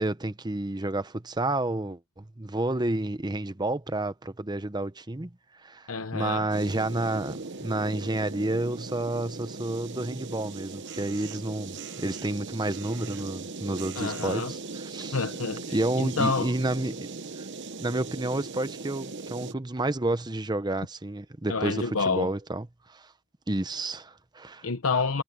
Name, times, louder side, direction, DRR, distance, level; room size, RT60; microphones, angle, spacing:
voice 1, 0.0-5.3 5.6-15.2 15.7-17.1 17.8-22.7 22.9-23.1 23.5-24.7, right 2 dB, 20° right, 0.9 m, -30 dB
voice 2, 5.9-6.5 14.0-14.5 15.1-16.5 21.5-22.3 24.6-25.2, left 4 dB, 85° left, 0.9 m, -28 dB
sound 1, 6.5-19.5, right 4 dB, 55° right, 1.0 m, -39 dB
head